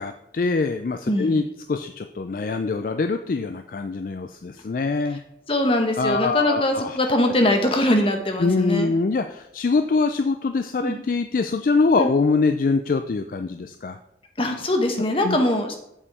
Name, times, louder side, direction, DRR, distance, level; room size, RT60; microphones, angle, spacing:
voice 1, 0.0-5.2 6.0-7.0 8.4-14.0 15.2-15.4, left 4 dB, 50° left, 8 dB, 0.4 m, -24 dB
voice 2, 5.5-8.9 10.8-11.0 12.0-12.1 14.4-15.8, left 1 dB, 30° left, 4 dB, 1.1 m, -22 dB
8.5 x 5.3 x 4.7 m, 0.80 s
head